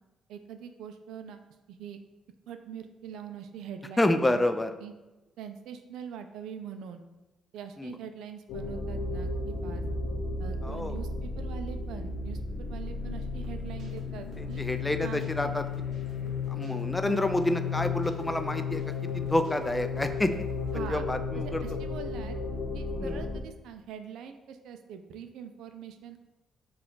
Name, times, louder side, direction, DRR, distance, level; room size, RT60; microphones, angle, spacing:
voice 1, 0.3-1.4 1.7-2.0 2.5-4.4 4.8-4.9 5.4-7.0 7.5-9.8 10.4-14.6 15.0-15.5 17.0-17.4 20.7-21.0 21.3-22.4 22.7-26.2, right 8 dB, 85° right, 7 dB, 0.3 m, -43 dB
voice 2, 4.0-4.7 7.8-8.0 10.6-11.0 14.4-15.7 16.5-20.5 20.7-21.6 23.0-23.2, left 1 dB, 15° left, 8 dB, 0.3 m, -29 dB
sound 1, 8.5-23.4, left 4 dB, 75° left, 0.5 m, -34 dB
sound 2, 13.4-20.7, right 3 dB, 65° right, 0.8 m, -52 dB
4.6 x 2.3 x 3.7 m, 1.1 s
cardioid pair, 90°, 0 cm